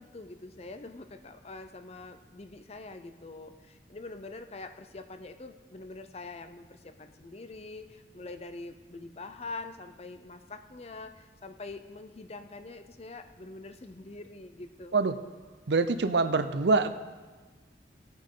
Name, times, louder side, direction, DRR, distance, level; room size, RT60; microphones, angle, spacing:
voice 1, 0.0-15.0, left 3 dB, 35° left, 8 dB, 0.6 m, -44 dB
voice 2, 15.7-16.9, right 3 dB, 75° right, 11 dB, 0.6 m, -25 dB
18.0 x 8.6 x 3.8 m, 1.4 s
head